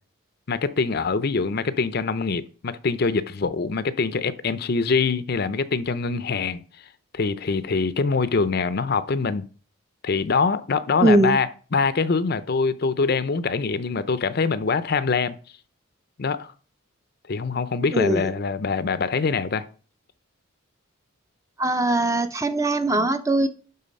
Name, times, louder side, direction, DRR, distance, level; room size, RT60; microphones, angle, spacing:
voice 1, 0.5-6.6 7.1-9.4 10.0-15.3 16.2-16.5 17.3-19.6, left 4 dB, 50° left, 0.5 m, -24 dB
voice 2, 11.0-11.4 17.9-18.3 21.6-23.5, right 1 dB, 15° right, 0.5 m, -21 dB
11.0 x 3.9 x 5.2 m
head